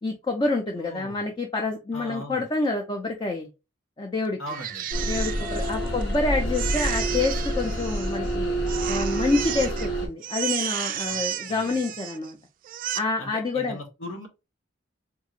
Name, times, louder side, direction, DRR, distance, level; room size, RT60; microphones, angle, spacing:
voice 1, 0.0-3.5 4.0-4.4 5.0-8.5 8.9-12.4 12.9-13.8, left 3 dB, 25° left, 0.5 m, -27 dB
voice 2, 0.8-1.3 1.9-2.5 4.4-4.9 5.8-6.1 11.1-11.2 11.5-11.9 13.2-14.3, equal, 85° left, 1.1 m, -39 dB
Crying sobbing, 4.5-6.2 6.5-8.3 8.7-9.9 10.2-12.3 12.6-13.0, right 11 dB, 45° right, 0.3 m, -32 dB
sound 1, 4.9-10.1, right 1 dB, 60° left, 1.2 m, -28 dB
3.6 x 3.0 x 2.4 m
head